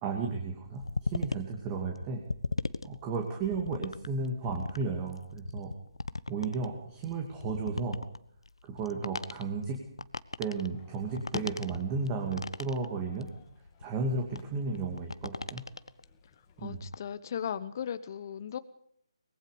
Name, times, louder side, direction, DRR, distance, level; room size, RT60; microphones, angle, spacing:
voice 1, 0.0-2.2 2.8-5.7 6.3-8.0 8.6-9.9 10.4-13.3 13.8-15.6 16.6-16.8, right 4 dB, 20° right, 2 dB, 2.5 m, -34 dB
sound 1, 0.6-16.1 16.5-17.0, left 3 dB, 80° left, 1.0 m, -38 dB
sound 2, 10.7-16.7, left 11 dB, 20° left, 2.2 m, -51 dB
voice 2, 16.6-18.6, left 8 dB, 40° left, 13 dB, 0.9 m, -37 dB
23.5 x 21.0 x 5.2 m, 0.71 s
figure-of-eight pair, 150°, 3 cm